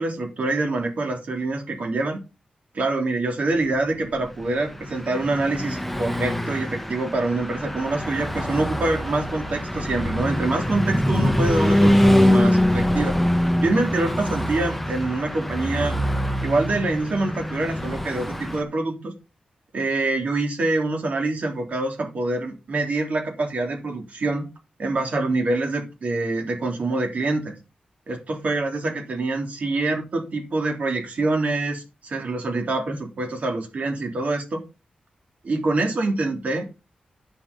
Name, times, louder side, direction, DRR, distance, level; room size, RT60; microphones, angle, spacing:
voice 1, 0.0-2.2 2.7-13.2 13.6-16.0 16.4-19.1 19.7-24.5 24.8-27.6 28.1-34.6 35.4-36.8, right 2 dB, 60° right, 3 dB, 3.3 m, -25 dB
Car passing by / Truck, 4.2-18.6, equal, 5° left, 1.2 m, -23 dB
9.9 x 7.3 x 5.3 m, 0.29 s
wide cardioid pair, 90°, 3 cm